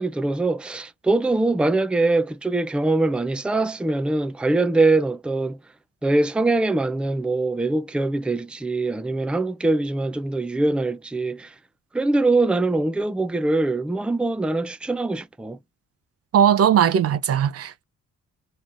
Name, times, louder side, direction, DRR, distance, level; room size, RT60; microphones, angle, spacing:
voice 1, 0.0-5.6 6.0-11.5 11.9-15.6, right 2 dB, 5° right, 0.5 m, -23 dB
voice 2, 16.3-17.8, right 9 dB, 50° right, 0.6 m, -19 dB
3.9 x 3.1 x 2.5 m
cardioid pair, 90°, 30 cm